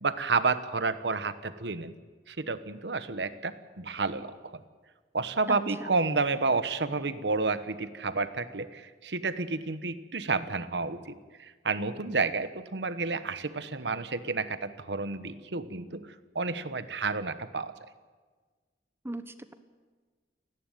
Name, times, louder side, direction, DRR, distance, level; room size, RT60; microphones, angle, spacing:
voice 1, 0.0-1.9 2.3-4.6 5.1-16.1 16.3-17.7, right 4 dB, 70° right, 12 dB, 1.2 m, -30 dB
voice 2, 5.5-5.9 19.0-19.5, right 1 dB, 15° right, 11 dB, 1.2 m, -39 dB
29.5 x 11.0 x 9.3 m, 1.4 s
head